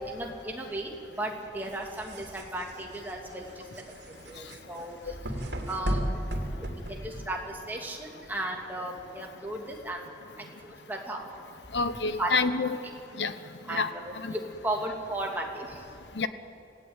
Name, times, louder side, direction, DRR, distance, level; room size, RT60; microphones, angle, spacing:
voice 1, 0.0-3.9 4.2-5.1 5.7-6.2 6.5-10.0 10.4-11.2 12.2-12.3 13.7-15.9, right 1 dB, 10° right, 0 dB, 2.8 m, -35 dB
sound 1, 1.6-7.5, right 1 dB, 85° right, 3.0 m, -35 dB
voice 2, 11.7-12.8 13.2-13.3 13.7-13.9 14.2-14.3 16.2-16.3, left 4 dB, 85° left, 11 dB, 1.2 m, -27 dB
28.0 x 17.0 x 9.1 m, 2.6 s
head